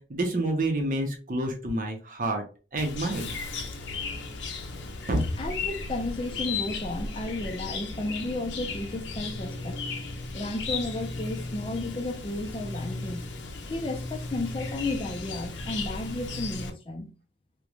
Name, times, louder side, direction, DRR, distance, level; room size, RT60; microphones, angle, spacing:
voice 1, 0.0-2.4 2.7-3.4 5.1-5.2, right 1 dB, 50° right, 0.6 m, -28 dB
Chirp tweet, 2.8-16.7, left 3 dB, 90° left, 0.5 m, -35 dB
voice 2, 5.4-9.8 10.3-13.3 13.7-17.1, left 2 dB, 30° left, 0.4 m, -33 dB
3.0 x 2.1 x 2.4 m
head